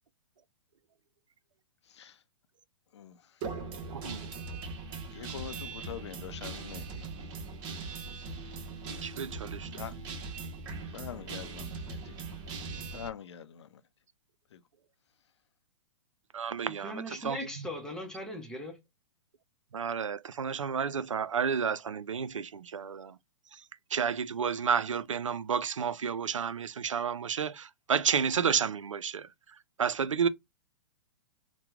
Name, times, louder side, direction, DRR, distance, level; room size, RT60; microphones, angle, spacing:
Guitar, 3.4-13.1, right 4 dB, 40° right, 0.9 m, -40 dB
voice 1, 3.9-4.3 9.0-9.7 16.3-17.4 19.7-23.1 23.9-29.3 29.8-30.3, right 7 dB, 80° right, 0.4 m, -31 dB
voice 2, 5.1-6.9 9.7-9.9 10.9-12.0 12.9-13.7 14.5-14.6, left 9 dB, 60° left, 0.5 m, -43 dB
voice 3, 16.8-18.8, left 1 dB, 5° left, 0.9 m, -39 dB
2.9 x 2.2 x 3.4 m
figure-of-eight pair, 115°, 16 cm